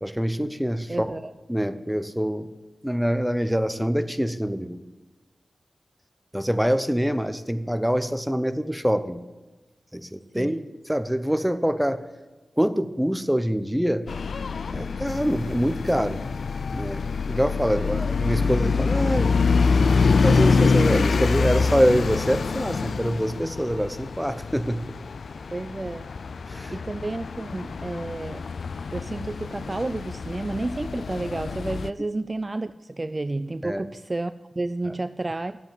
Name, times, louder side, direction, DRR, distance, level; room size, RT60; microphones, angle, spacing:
voice 1, 0.0-1.1 1.5-2.5 2.8-4.8 6.3-9.2 9.9-10.6 10.9-12.1 12.6-14.1 14.7-16.3 16.7-19.3 20.2-25.0 26.5-26.8 33.6-33.8, equal, 5° right, 10 dB, 0.8 m, -25 dB
voice 2, 0.9-1.2 10.3-10.7 17.8-18.0 25.5-26.1 26.7-28.5 28.9-35.6, right 2 dB, 30° right, 13 dB, 0.4 m, -31 dB
sound 1, 14.1-31.9, left 4 dB, 75° left, 0.3 m, -25 dB
10.5 x 7.9 x 7.3 m, 1.2 s
cardioid pair, 65°, 0 cm